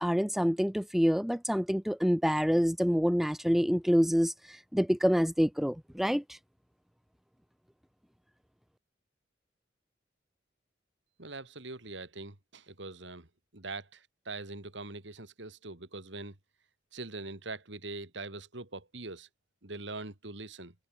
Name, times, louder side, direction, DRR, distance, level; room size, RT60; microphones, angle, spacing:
voice 1, 0.0-6.4, equal, ahead, 0.6 m, -27 dB
voice 2, 11.2-13.3 13.5-16.3 16.9-19.3 19.6-20.7, right 3 dB, 70° right, 2.9 m, -42 dB
head